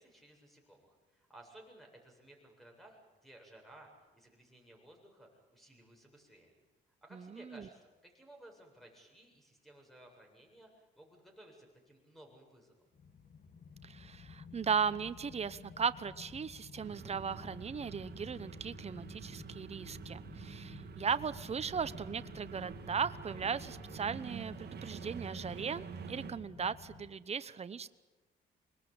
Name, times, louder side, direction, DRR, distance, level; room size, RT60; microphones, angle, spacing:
voice 1, 0.0-6.5 7.0-12.9, right 1 dB, ahead, 2 dB, 7.9 m, -58 dB
voice 2, 7.1-7.7 13.8-27.9, right 6 dB, 30° right, 14 dB, 0.9 m, -37 dB
sound 1, 12.9-27.1, left 5 dB, 50° left, 2.2 m, -53 dB
sound 2, 16.8-26.3, right 6 dB, 55° right, 2.6 m, -47 dB
25.5 x 20.5 x 8.9 m, 1.2 s
cardioid pair, 90°, 20 cm